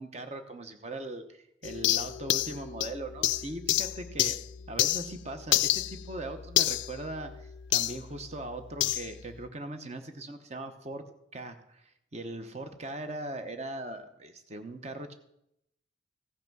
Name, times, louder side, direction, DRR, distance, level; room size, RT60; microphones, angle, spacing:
voice 1, 0.0-4.4 4.7-11.0 11.3-15.1, right 2 dB, 35° right, 8 dB, 0.9 m, -40 dB
sound 1, 1.6-5.2 5.5-8.0 8.8-9.1, left 15 dB, 65° left, 0.3 m, -29 dB
15.5 x 5.9 x 6.0 m, 0.79 s
head